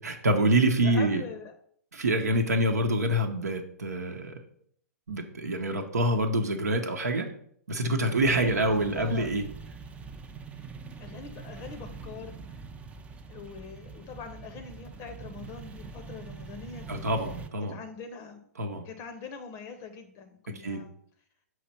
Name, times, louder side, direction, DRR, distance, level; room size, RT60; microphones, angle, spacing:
voice 1, 0.0-1.2 1.9-4.4 5.1-7.3 7.7-9.4 16.9-17.8 18.6-18.8 20.6-20.8, right 1 dB, 75° right, 4 dB, 0.9 m, -26 dB
voice 2, 0.8-1.5 8.3-9.5 10.5-10.6 11.0-12.6 13.3-17.0 17.7-18.5 18.8-21.0, left 5 dB, 30° left, 7 dB, 0.6 m, -43 dB
sound 1, 8.1-17.5, right 4 dB, 15° right, 0.5 m, -44 dB
5.7 x 3.1 x 5.6 m, 0.63 s
figure-of-eight pair, 110°, 9 cm